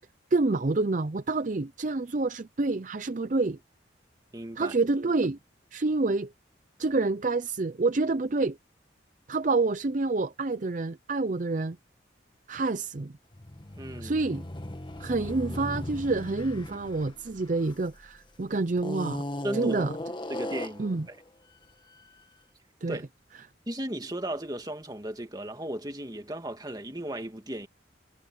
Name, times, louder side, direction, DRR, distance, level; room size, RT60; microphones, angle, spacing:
voice 1, 0.3-3.6 4.6-5.4 5.7-6.3 6.8-8.6 9.3-11.8 12.5-13.1 14.0-14.4 15.0-19.2 19.5-19.9 20.8-21.1 22.8-23.0, right 3 dB, 45° right, 0.5 m, -27 dB
voice 2, 4.3-4.7 13.8-14.2 19.4-19.8 20.3-21.2 22.9-23.1 23.7-27.7, right 1 dB, 20° right, 2.2 m, -35 dB
sound 1, 13.3-18.2 18.8-21.0, left 1 dB, 25° left, 1.6 m, -37 dB
head